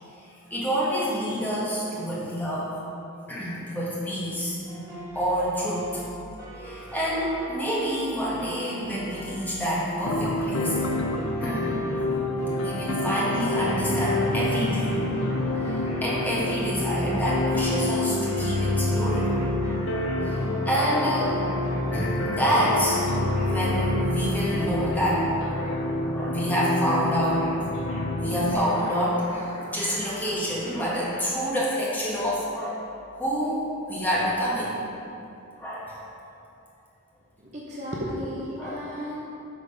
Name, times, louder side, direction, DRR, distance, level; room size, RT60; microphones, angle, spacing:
voice 1, 0.5-2.7 3.3-4.6 5.1-6.0 6.5-10.8 11.4-11.7 12.6-15.2 15.6-15.8 16.0-19.3 20.2-20.4 20.6-21.4 21.9-23.0 23.5-25.8 26.1-27.4 28.2-32.8 33.2-34.7 35.6-36.0 38.6-38.9, equal, 10° left, -8 dB, 1.5 m, -27 dB
sound 1, 4.6-23.9, right 1 dB, 15° right, 1.5 m, -41 dB
sound 2, 10.0-28.6, left 1 dB, 60° left, 0.6 m, -27 dB
sound 3, 13.4-31.2, equal, 30° left, 1.8 m, -43 dB
voice 2, 37.4-39.2, equal, 30° right, -5 dB, 0.8 m, -33 dB
8.3 x 4.0 x 5.6 m, 2.8 s
head